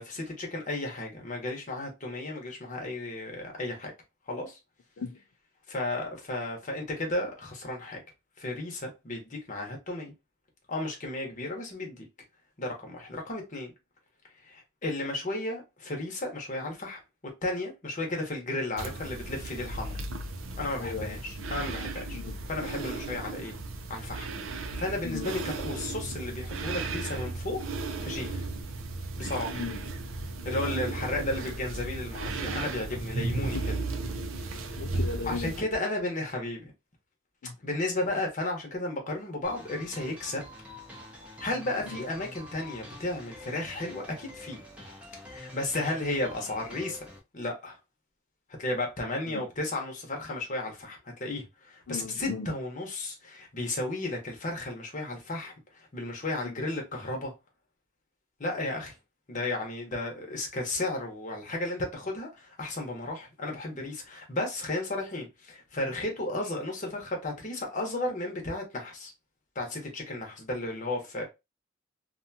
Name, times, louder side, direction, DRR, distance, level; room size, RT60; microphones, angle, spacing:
voice 1, 0.0-3.9 4.3-4.6 5.7-8.0 8.4-10.1 10.7-12.1 12.6-13.7 14.4-20.0 20.6-22.2 22.5-23.5 23.9-24.3 24.7-27.6 28.0-28.4 29.2-29.6 30.4-33.6 34.5-34.6 35.3-36.7 37.6-40.5 41.4-44.6 45.3-47.1 47.3-47.8 48.6-57.3 58.4-58.9 59.3-69.1 69.5-71.3, left 2 dB, 40° left, 0.9 m, -34 dB
sound 1, 18.8-35.6, right 2 dB, 70° right, 0.5 m, -35 dB
voice 2, 20.8-21.2 22.1-22.4 25.0-25.3 29.5-29.8 33.4-33.6 34.8-35.5 37.4-37.6 41.8-42.0 49.3-49.4 51.9-52.5 56.4-56.6, left 5 dB, 65° left, 0.4 m, -37 dB
sound 2, 39.4-47.2, left 1 dB, 5° right, 0.7 m, -46 dB
2.6 x 2.3 x 2.6 m
head